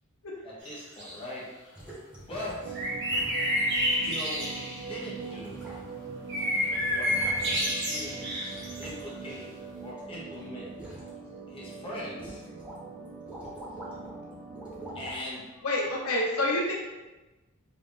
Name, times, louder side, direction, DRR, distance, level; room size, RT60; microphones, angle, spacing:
voice 1, 0.4-1.5 2.3-2.8 4.0-5.6 6.9-7.2 7.5-8.2 8.8-9.5 9.8-10.7 11.5-12.5 14.9-15.7, left 1 dB, 25° left, -6 dB, 0.9 m, -40 dB
sound 1, 0.7-1.1 2.7-4.9 6.3-8.9, equal, 55° right, 1.1 m, -29 dB
sound 2, 1.8-2.7 3.1-3.4 3.7-3.9 4.8-4.9 5.2-6.1 6.4-7.9 8.5-10.0 10.3-11.1 11.6-11.7 12.2-12.8 13.1-14.2 14.5-15.2 15.9-16.0, right 1 dB, 5° right, 0.7 m, -45 dB
sound 3, 2.6-15.1, right 4 dB, 35° right, 0.4 m, -42 dB
voice 2, 15.6-16.7, left 1 dB, 75° left, -3 dB, 0.8 m, -28 dB
3.5 x 3.4 x 2.6 m, 1.1 s
head